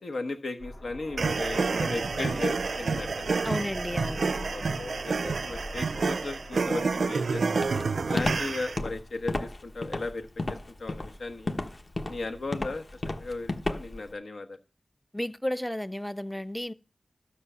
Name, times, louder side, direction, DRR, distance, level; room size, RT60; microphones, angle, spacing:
voice 1, 0.0-3.3 4.5-7.6 8.1-11.5 12.1-12.8 13.2-14.6, left 3 dB, 85° left, 1.2 m, -36 dB
sound 1, 0.6-9.3 9.6-9.7, left 1 dB, 65° left, 1.9 m, -44 dB
sound 2, 1.2-8.8, right 4 dB, 85° right, 0.5 m, -29 dB
voice 2, 3.4-4.3 15.1-16.7, left 1 dB, 5° left, 0.4 m, -32 dB
Walk footsteps, 7.6-14.1, left 2 dB, 45° left, 1.1 m, -32 dB
12.5 x 5.6 x 6.8 m
wide cardioid pair, 70°, 0 cm